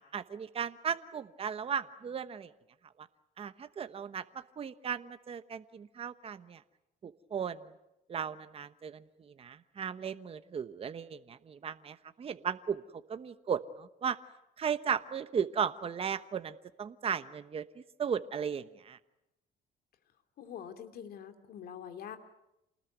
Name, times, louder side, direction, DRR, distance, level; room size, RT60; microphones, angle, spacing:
voice 1, 0.0-2.5 3.0-3.1 3.4-6.6 7.0-7.7 8.1-12.8 13.1-14.2 14.6-19.0, right 7 dB, 35° right, 11 dB, 1.1 m, -36 dB
voice 2, 20.4-22.2, left 8 dB, 65° left, 7 dB, 2.8 m, -45 dB
28.0 x 20.0 x 9.3 m, 0.90 s
cardioid pair, 110°, 17 cm